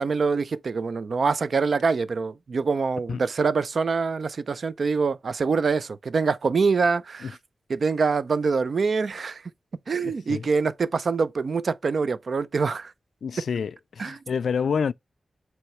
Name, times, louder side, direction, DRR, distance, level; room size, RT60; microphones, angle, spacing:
voice 1, 0.0-7.3 7.7-9.4 9.9-12.9 14.0-14.2, right 4 dB, 60° right, 0.5 m, -25 dB
voice 2, 10.0-10.5 13.2-14.9, left 6 dB, 85° left, 0.3 m, -28 dB
7.9 x 3.1 x 4.3 m
wide cardioid pair, 120°, 0 cm